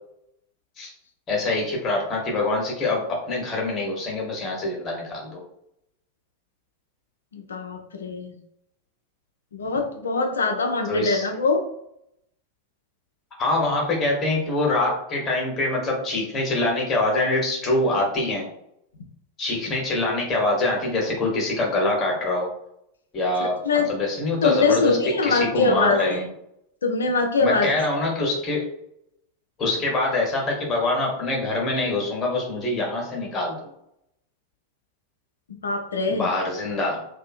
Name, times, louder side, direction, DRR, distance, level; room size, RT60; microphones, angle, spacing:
voice 1, 1.3-5.4 10.8-11.3 13.4-18.5 19.4-22.5 23.1-23.6 23.9-25.0 25.2-26.3 27.4-28.7 29.6-33.7 36.1-37.1, left 2 dB, 25° left, -1 dB, 1.0 m, -24 dB
voice 2, 7.3-8.3 9.5-11.6 23.6-23.9 24.4-26.2 26.8-27.8 35.6-36.3, left 3 dB, 70° left, 4 dB, 0.5 m, -23 dB
2.6 x 2.4 x 2.5 m, 0.75 s
figure-of-eight pair, 90°, 0 cm